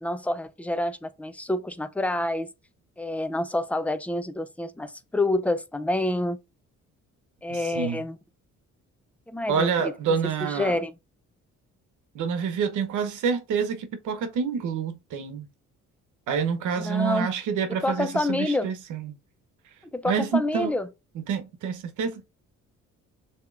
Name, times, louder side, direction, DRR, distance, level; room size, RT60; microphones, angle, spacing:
voice 1, 0.0-2.5 3.0-6.4 7.4-8.2 9.3-9.9 10.4-10.9 16.8-17.3 17.7-18.7 19.9-20.9, left 1 dB, 5° left, 0.5 m, -28 dB
voice 2, 7.5-8.0 9.5-10.8 12.1-15.5 16.3-19.1 20.0-20.7 21.1-22.2, right 6 dB, 85° right, 1.0 m, -27 dB
6.6 x 3.0 x 2.5 m
cardioid pair, 90°, 30 cm